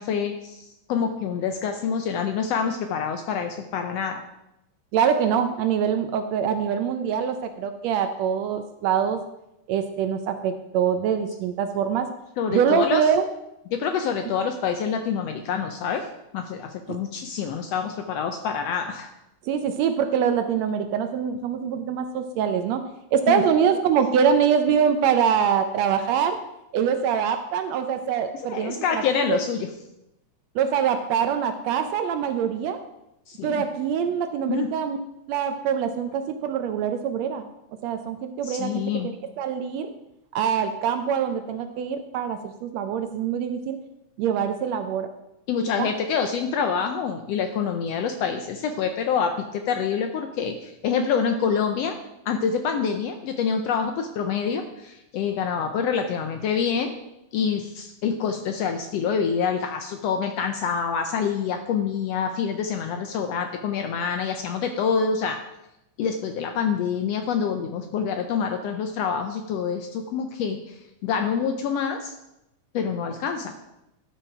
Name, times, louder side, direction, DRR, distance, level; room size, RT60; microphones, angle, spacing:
voice 1, 0.0-4.2 12.4-13.0 13.7-16.1 16.3-19.1 23.3-23.4 28.5-29.7 33.3-33.6 34.5-34.7 38.4-39.1 45.5-52.0 52.3-56.9 57.3-65.4 66.0-70.8 71.0-72.1 72.7-73.5, left 6 dB, 80° left, 6 dB, 1.5 m, -26 dB
voice 2, 4.9-9.2 9.7-12.1 12.5-13.3 16.9-17.0 19.5-22.8 23.1-26.4 26.7-29.4 30.5-32.8 33.4-35.0 35.3-37.5 37.8-38.8 39.4-39.9 40.3-43.8 44.2-45.1 45.8-45.9, right 7 dB, 75° right, 8 dB, 1.7 m, -24 dB
12.5 x 5.7 x 4.8 m, 0.88 s
omnidirectional pair, 3.4 m